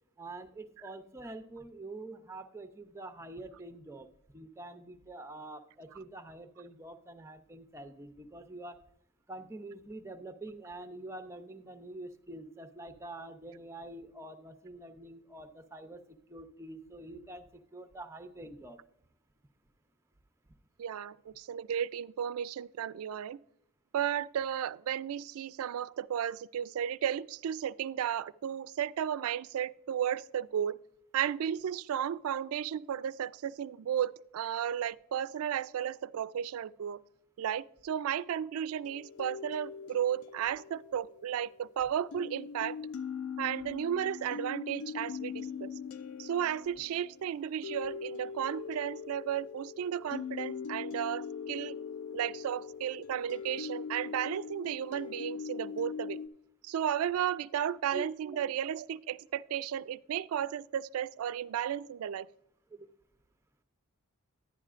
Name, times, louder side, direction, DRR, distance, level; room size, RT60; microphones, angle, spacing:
voice 1, 0.2-8.8 9.3-16.0 16.3-18.8 57.9-58.0 62.7-62.9, right 2 dB, 15° right, 0.5 m, -46 dB
voice 2, 20.8-23.4 23.9-30.8 31.1-37.0 37.4-42.8 43.4-45.7 46.2-51.8 52.1-56.2 56.6-62.3, right 9 dB, 75° right, 0.3 m, -34 dB
sound 1, 38.8-41.7 42.1-56.3, left 6 dB, 80° left, 0.4 m, -41 dB
11.0 x 9.9 x 2.4 m
head